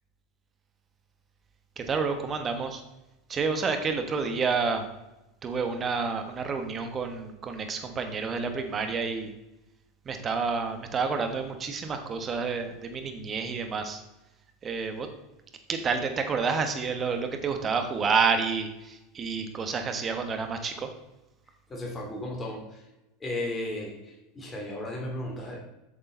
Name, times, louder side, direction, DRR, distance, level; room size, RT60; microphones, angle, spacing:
voice 1, 1.8-2.8 3.3-4.8 5.4-9.3 10.0-14.0 14.6-15.1 15.7-20.9, right 5 dB, 30° right, 6 dB, 1.5 m, -29 dB
voice 2, 21.7-22.8 23.2-25.6, left 1 dB, 25° left, -1 dB, 2.8 m, -35 dB
8.8 x 6.6 x 4.0 m, 0.94 s
hypercardioid pair, 85°, 0 cm